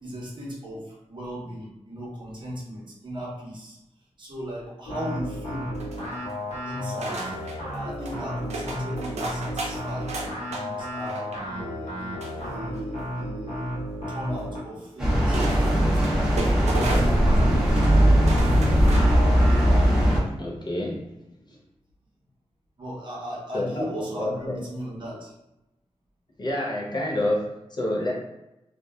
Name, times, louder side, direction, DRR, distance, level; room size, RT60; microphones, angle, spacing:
voice 1, 0.0-3.8 4.2-5.7 6.6-7.3 7.7-10.2 10.5-13.7 14.1-15.8 16.1-18.5 22.8-25.3, equal, 45° right, -4 dB, 0.7 m, -37 dB
sound 1, 4.9-14.7 16.7-19.9, equal, 80° left, 0.8 m, -33 dB
sound 2, 5.7-6.4 7.0-7.6 8.0-8.2 8.5-10.6 11.0-11.4 12.2-13.0 14.4-14.5 15.3-17.3 17.6-17.9 18.2-19.2 19.6-19.7, right 2 dB, 80° right, 0.5 m, -34 dB
sound 3, 15.0-20.2, equal, 5° right, 0.7 m, -19 dB
voice 2, 20.4-21.1 23.5-23.9 24.2-24.6 26.4-28.1, left 1 dB, 40° left, -2 dB, 0.5 m, -28 dB
2.8 x 2.1 x 2.2 m, 0.91 s
wide cardioid pair, 170°, 11 cm